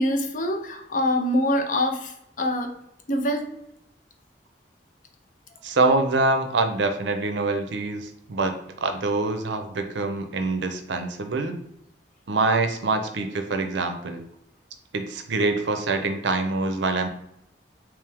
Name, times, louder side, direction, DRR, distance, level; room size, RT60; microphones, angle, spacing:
voice 1, 0.0-2.7 3.1-3.5, left 1 dB, 45° left, 4 dB, 0.6 m, -24 dB
voice 2, 5.6-11.6 12.3-14.2 14.9-17.1, right 3 dB, 80° right, 7 dB, 0.6 m, -25 dB
3.4 x 3.1 x 3.4 m, 0.78 s
head